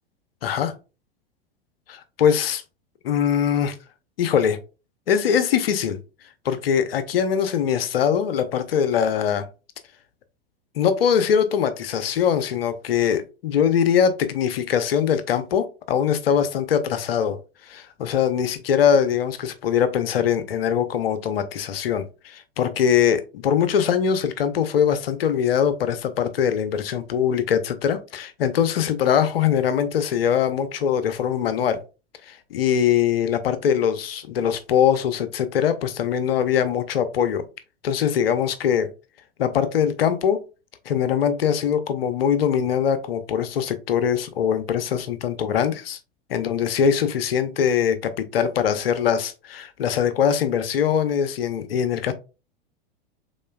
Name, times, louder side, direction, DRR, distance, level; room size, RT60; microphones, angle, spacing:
voice 1, 0.4-0.7 1.9-2.6 3.0-3.8 4.2-4.6 5.1-6.0 6.4-9.4 10.8-17.4 17.7-31.8 32.3-37.4 37.8-38.9 39.4-40.4 40.9-46.0 46.3-52.1, left 8 dB, 70° left, 0.8 m, -22 dB
5.2 x 3.8 x 2.3 m
hypercardioid pair, 95°, 30 cm